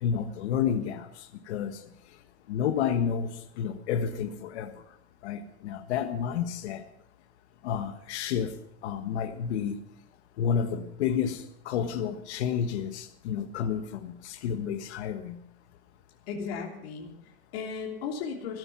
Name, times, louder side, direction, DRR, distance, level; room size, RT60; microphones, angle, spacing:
voice 1, 0.0-1.1 1.5-1.7 2.5-3.3 3.6-4.7 5.2-6.8 7.6-8.5 8.8-9.8 10.4-15.4, left 8 dB, 85° left, 7 dB, 1.4 m, -30 dB
voice 2, 16.3-18.6, left 6 dB, 65° left, -1 dB, 3.3 m, -36 dB
15.5 x 12.5 x 5.9 m, 0.78 s
supercardioid pair, 160°, 33 cm